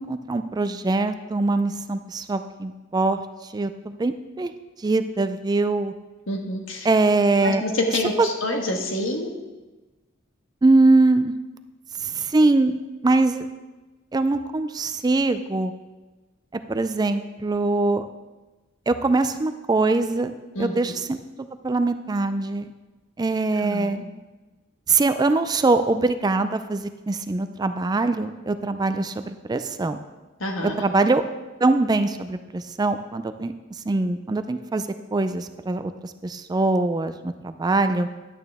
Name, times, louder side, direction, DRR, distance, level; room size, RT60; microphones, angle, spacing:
voice 1, 0.0-3.2 3.5-4.5 4.8-5.9 6.8-7.6 8.2-8.3 10.6-11.3 12.0-12.7 13.0-13.5 14.1-15.7 16.7-18.0 18.9-22.7 23.2-24.0 24.9-30.0 30.6-31.2 31.6-33.5 33.9-34.8 35.1-35.9 36.2-38.1, right 3 dB, 20° right, 10 dB, 0.3 m, -22 dB
voice 2, 6.3-6.9 7.4-9.3 20.5-20.7 23.6-24.0 30.4-30.7, left 1 dB, 80° left, 2 dB, 1.5 m, -27 dB
11.0 x 8.8 x 3.5 m, 1.2 s
head